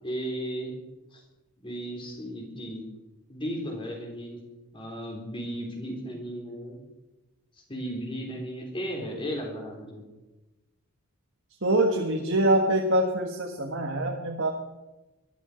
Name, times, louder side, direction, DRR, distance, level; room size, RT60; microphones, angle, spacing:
voice 1, 0.0-0.7 1.1-1.2 1.6-2.9 3.3-4.4 4.7-6.8 7.7-10.0, equal, 25° left, 0 dB, 3.9 m, -35 dB
voice 2, 11.6-14.5, right 1 dB, 55° right, 1 dB, 1.6 m, -24 dB
21.5 x 12.5 x 5.2 m, 1.1 s
head